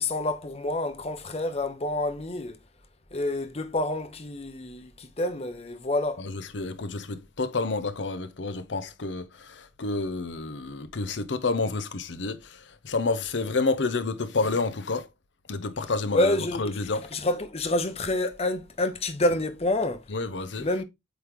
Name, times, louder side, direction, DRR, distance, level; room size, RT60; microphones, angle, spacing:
voice 1, 0.0-2.6 3.1-6.2 16.1-16.7 17.1-20.0 20.6-20.8, left 1 dB, 35° left, 0.8 m, -28 dB
voice 2, 6.2-15.1 15.5-17.1 20.1-20.7, left 3 dB, 75° left, 0.8 m, -29 dB
8.1 x 3.3 x 3.6 m
head